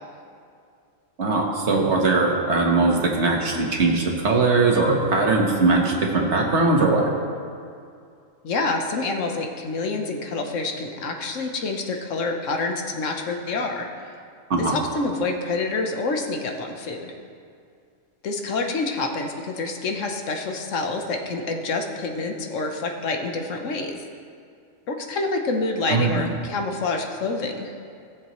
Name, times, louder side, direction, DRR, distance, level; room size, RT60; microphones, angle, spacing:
voice 1, 1.2-7.1 14.5-14.7 25.9-26.3, right 3 dB, 60° right, 0 dB, 1.5 m, -20 dB
voice 2, 8.4-13.9 14.6-17.1 18.2-24.0 24.9-27.7, left 3 dB, 75° left, 3 dB, 1.3 m, -27 dB
17.5 x 7.2 x 3.1 m, 2.4 s
omnidirectional pair, 1.3 m